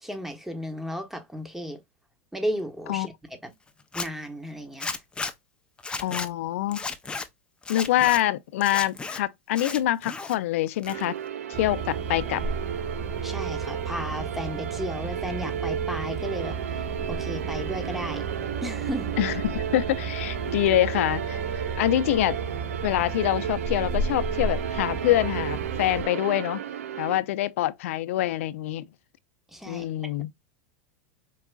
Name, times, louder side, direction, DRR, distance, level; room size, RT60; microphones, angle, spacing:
voice 1, 0.0-1.8 2.3-3.1 3.4-3.5 3.9-5.0 13.2-18.2 18.6-19.1 29.5-29.9, equal, 5° right, 1.0 m, -34 dB
Zipper (clothing), 3.8-4.1 4.8-5.3 5.8-6.3 6.7-7.3 7.6-8.2 8.6-9.2 9.5-10.4 10.7-11.3, left 4 dB, 15° left, 0.5 m, -33 dB
voice 2, 6.0-6.8 7.7-11.2 11.6-12.4 19.2-21.4 21.8-22.4 22.8-26.6 27.0-28.9 29.7-30.3, left 14 dB, 70° left, 0.3 m, -25 dB
sound 1, 10.8-27.2, right 9 dB, 80° right, 0.4 m, -33 dB
sound 2, 11.5-26.1, right 4 dB, 40° right, 2.0 m, -33 dB
4.6 x 2.4 x 2.3 m
hypercardioid pair, 105°, 8 cm